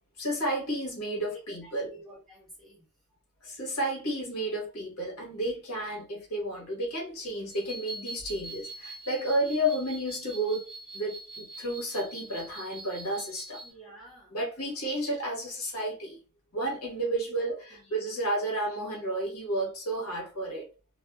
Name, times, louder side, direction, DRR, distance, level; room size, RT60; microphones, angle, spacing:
voice 1, 0.2-1.9 3.4-10.7 10.9-13.6 14.3-16.2 16.5-20.7, right 1 dB, 80° left, 1.2 m, -32 dB
voice 2, 1.6-2.8 3.5-3.6 13.6-14.3 16.8-17.2 17.7-18.2, right 2 dB, ahead, 1.3 m, -52 dB
sound 1, 7.5-13.7, right 2 dB, 50° left, 1.3 m, -44 dB
2.5 x 2.4 x 2.3 m
head